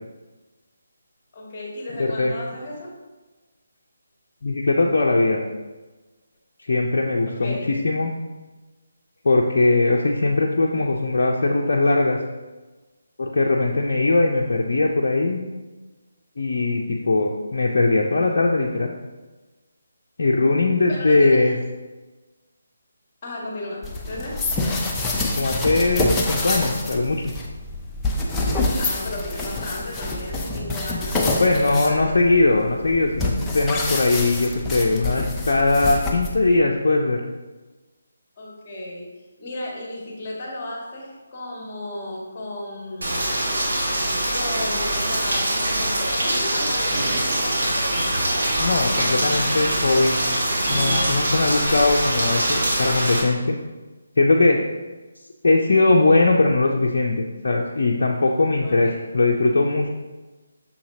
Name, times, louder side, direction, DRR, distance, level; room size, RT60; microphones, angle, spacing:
voice 1, 1.3-3.0 7.3-7.8 20.9-21.5 23.2-24.4 28.4-32.2 38.4-39.1 39.4-43.3 44.3-48.0 58.6-59.0, left 1 dB, 25° left, -4 dB, 2.1 m, -34 dB
voice 2, 2.0-2.3 4.4-5.4 6.6-8.1 9.2-12.2 13.2-15.4 16.4-18.9 20.2-21.6 25.4-27.3 31.4-37.2 48.6-50.2 50.7-53.6 54.2-54.6 55.4-59.9, left 2 dB, 60° left, -1 dB, 0.5 m, -20 dB
sound 1, 23.8-36.6, left 2 dB, 10° left, 0.6 m, -26 dB
Rain, 43.0-53.2, right 1 dB, 65° right, 2.0 m, -23 dB
Scratching (performance technique), 46.3-46.4 46.6-47.4 47.6-47.7 47.9-49.0 49.3-49.7 49.9-50.0 50.3-50.4 50.6-51.1, right 1 dB, 30° right, 1.4 m, -29 dB
6.5 x 5.6 x 2.8 m, 1.2 s
figure-of-eight pair, 150°, 0 cm